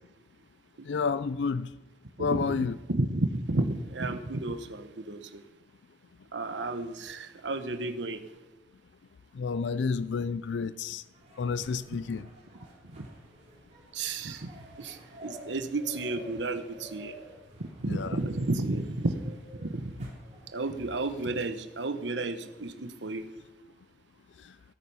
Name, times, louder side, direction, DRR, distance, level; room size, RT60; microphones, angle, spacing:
voice 1, 0.8-1.7 2.2-2.7 9.3-11.0 11.4-12.2 17.9-18.2, left 5 dB, 80° left, 0.4 m, -30 dB
voice 2, 2.2-5.4 6.3-8.2 12.9-13.1 13.9-14.5 14.8-17.2 17.6-20.1 20.5-23.3, right 2 dB, 90° right, 1.1 m, -32 dB
sound 1, 11.1-20.8, equal, 40° right, 3.5 m, -50 dB
16.5 x 9.2 x 5.6 m
head